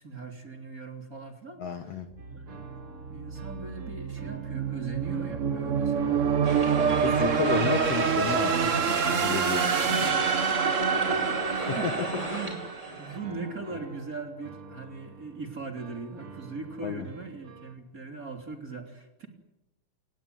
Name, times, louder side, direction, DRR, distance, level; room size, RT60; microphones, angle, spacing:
voice 1, 0.0-6.2 9.9-19.3, right 3 dB, 25° right, 5 dB, 3.5 m, -40 dB
voice 2, 1.6-2.1 6.7-10.2 11.7-11.9 16.8-17.1, left 7 dB, 60° left, 9 dB, 2.1 m, -33 dB
sound 1, 2.2-17.7, right 3 dB, 45° right, 3.3 m, -49 dB
sound 2, 2.2-13.2, right 6 dB, 80° right, 0.6 m, -27 dB
sound 3, 6.4-13.2, right 1 dB, 10° right, 5.9 m, -37 dB
28.5 x 19.0 x 9.4 m, 0.96 s
omnidirectional pair, 3.6 m